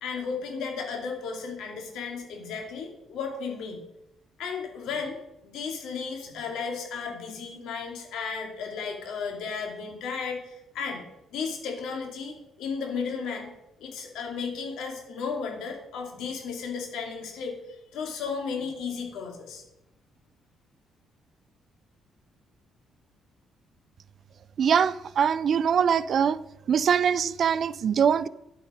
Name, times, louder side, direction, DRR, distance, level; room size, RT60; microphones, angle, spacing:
voice 1, 0.0-3.8 4.4-13.5 13.8-19.6, left 5 dB, 85° left, 2.7 m, -34 dB
voice 2, 24.6-26.4 26.7-28.3, right 7 dB, 45° right, 0.4 m, -23 dB
11.0 x 8.1 x 5.2 m
cardioid pair, 140°, 0 cm